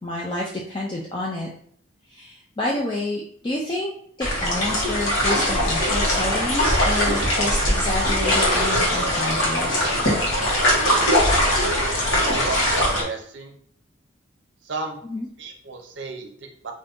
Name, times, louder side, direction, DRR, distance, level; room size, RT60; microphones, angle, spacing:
voice 1, 0.0-1.5 2.1-3.9 4.2-9.8 15.1-15.3, left 1 dB, 25° left, -3 dB, 0.3 m, -29 dB
sound 1, 4.2-13.0, equal, 90° left, 1.1 m, -21 dB
voice 2, 12.1-13.6 14.6-15.0 15.4-16.7, right 3 dB, 65° right, 4 dB, 0.6 m, -33 dB
2.5 x 2.5 x 3.5 m, 0.65 s
head